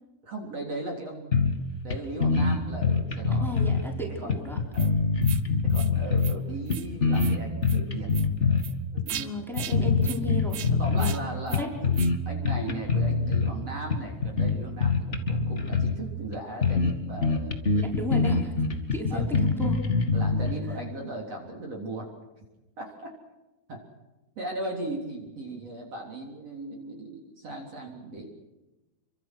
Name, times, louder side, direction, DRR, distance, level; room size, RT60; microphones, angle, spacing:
voice 1, 0.2-1.6 1.8-3.5 4.2-4.3 4.7-5.0 5.6-8.1 8.5-9.3 9.6-10.1 10.7-11.9 12.3-17.9 19.1-19.3 20.1-22.1 22.8-23.1 23.7-23.8 24.4-28.3, right 2 dB, 40° right, 0 dB, 4.5 m, -37 dB
sound 1, 1.3-1.9 2.2-3.8 4.3-6.4 6.7-8.6 9.0-9.2 9.6-11.2 11.5-12.2 12.4-13.5 13.9-16.0 16.3-16.4 16.6-16.9 17.2-20.5, left 4 dB, 30° left, 1.3 m, -24 dB
voice 2, 3.3-4.6 9.1-11.2 11.5-11.7 17.8-18.5 18.9-19.3 19.6-19.8, left 1 dB, ahead, 0 dB, 4.8 m, -34 dB
sound 2, 4.7-4.9 5.2-5.4 5.7-5.9 6.2-6.3 6.7-6.9 7.1-7.3 7.6-7.8 8.1-8.3 8.6-8.7 9.1-9.3 9.5-9.7 10.0-10.2 10.5-10.7 11.0-11.2 11.5-11.6 11.9-12.1, right 12 dB, 70° right, 1.6 m, -38 dB
28.5 x 24.5 x 6.2 m, 1.0 s
omnidirectional pair, 4.4 m